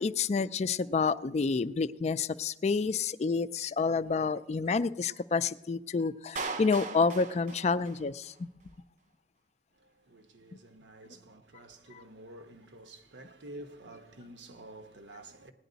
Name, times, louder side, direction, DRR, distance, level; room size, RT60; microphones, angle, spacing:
voice 1, 0.0-8.5, left 4 dB, 40° left, 0.3 m, -29 dB
Clapping, 6.4-8.4, right 4 dB, 45° right, 0.7 m, -39 dB
voice 2, 9.7-15.5, right 1 dB, 85° right, 1.1 m, -49 dB
18.0 x 10.0 x 4.0 m
head